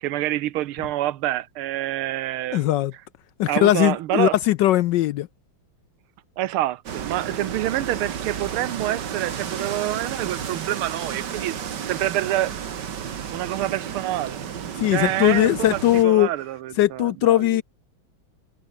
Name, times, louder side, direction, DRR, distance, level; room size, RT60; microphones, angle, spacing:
voice 1, 0.0-2.7 3.5-4.4 6.4-12.6 13.3-14.4 14.9-17.6, right 14 dB, 90° right, 1.7 m, -27 dB
voice 2, 2.5-2.9 3.4-5.3 14.8-16.3 16.8-17.6, left 14 dB, 75° left, 1.1 m, -19 dB
sound 1, 6.9-16.0, right 8 dB, 55° right, 2.0 m, -32 dB
omnidirectional pair, 2.3 m